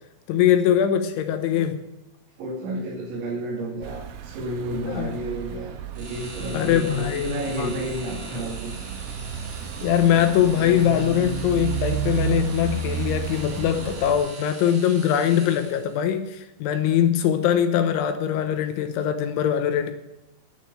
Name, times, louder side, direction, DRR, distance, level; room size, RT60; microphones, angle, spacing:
voice 1, 0.3-1.8 4.9-5.1 6.5-7.7 9.8-19.9, left 9 dB, 75° left, 8 dB, 3.1 m, -22 dB
voice 2, 2.4-8.8, right 1 dB, 65° right, -4 dB, 5.0 m, -31 dB
sound 1, 3.8-14.2, right 7 dB, 85° right, 2.2 m, -32 dB
sound 2, 5.9-16.0, right 2 dB, 30° right, 2.3 m, -42 dB
11.0 x 10.0 x 7.9 m, 0.96 s
omnidirectional pair, 5.8 m